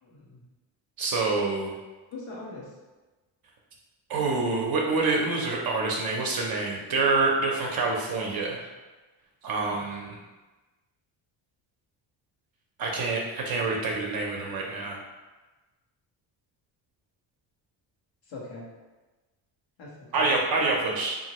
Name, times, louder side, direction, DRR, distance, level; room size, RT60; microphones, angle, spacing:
voice 1, 0.0-0.4 2.1-2.7 9.6-9.8 18.3-18.7 19.8-20.3, left 2 dB, 85° left, -5 dB, 1.0 m, -42 dB
voice 2, 1.0-1.7 4.1-8.6 9.4-10.2 12.8-15.0 20.1-21.2, right 3 dB, 50° right, -1 dB, 0.6 m, -26 dB
2.8 x 2.5 x 2.9 m, 1.2 s
cardioid pair, 90°, 46 cm